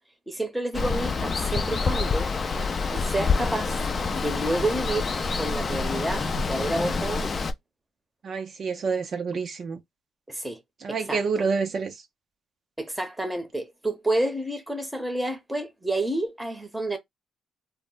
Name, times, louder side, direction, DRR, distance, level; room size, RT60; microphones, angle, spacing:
voice 1, 0.3-2.3 2.9-3.8 4.1-5.1 5.3-7.3 10.3-10.6 10.9-11.2 12.8-17.0, right 1 dB, 10° right, 0.8 m, -29 dB
Water, 0.7-7.5, left 4 dB, 40° left, 0.4 m, -27 dB
voice 2, 8.2-9.8 10.8-12.0, right 5 dB, 55° right, 0.4 m, -28 dB
2.1 x 2.0 x 3.8 m
cardioid pair, 90°, 0 cm